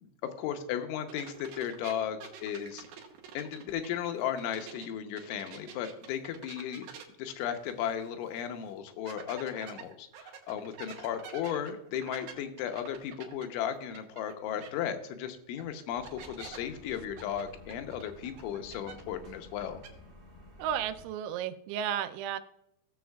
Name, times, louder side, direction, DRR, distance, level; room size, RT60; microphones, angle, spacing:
voice 1, 0.0-2.8 3.3-6.9 7.2-19.8, left 9 dB, 85° left, 6 dB, 3.3 m, -35 dB
sound 1, 1.1-4.9 5.2-8.1 8.4-8.5 9.1-14.3 14.6-14.7 15.6-15.7 16.0-16.6 17.2-19.3 19.5-19.9, right 7 dB, 70° right, 2.5 m, -48 dB
sound 2, 15.9-21.0, left 2 dB, 50° right, 0.6 m, -52 dB
voice 2, 20.6-22.4, right 9 dB, 85° right, 11 dB, 3.0 m, -33 dB
17.0 x 7.2 x 2.3 m, 0.82 s
omnidirectional pair, 5.3 m